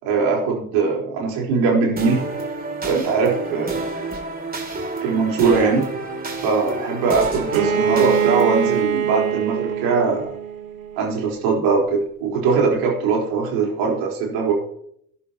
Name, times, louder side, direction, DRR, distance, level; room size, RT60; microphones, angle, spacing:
voice 1, 0.0-2.2 2.8-3.8 5.0-5.9 6.4-10.3 11.0-14.5, right 4 dB, 60° right, -1 dB, 3.9 m, -21 dB
sound 1, 2.0-8.8, right 2 dB, 20° right, 2.7 m, -29 dB
Bowed string instrument, 7.5-11.2, right 8 dB, 85° right, 1.2 m, -23 dB
14.0 x 11.0 x 2.9 m, 0.68 s
figure-of-eight pair, 65°, 40 cm